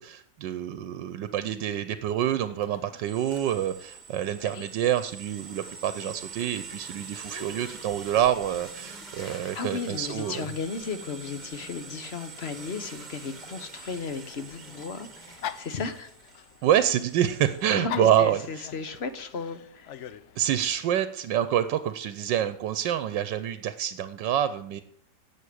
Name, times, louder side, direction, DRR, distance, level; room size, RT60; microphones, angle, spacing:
voice 1, 0.0-10.5 16.6-18.6 20.4-24.8, right 10 dB, 85° right, 12 dB, 1.4 m, -27 dB
Dog, 2.5-20.8, left 9 dB, 65° left, 0.7 m, -46 dB
sound 1, 3.1-17.7, right 4 dB, 25° right, 1.4 m, -45 dB
voice 2, 9.2-16.1 17.7-19.9, left 5 dB, 45° left, 11 dB, 1.1 m, -35 dB
11.0 x 7.6 x 8.4 m, 0.66 s
omnidirectional pair, 1.9 m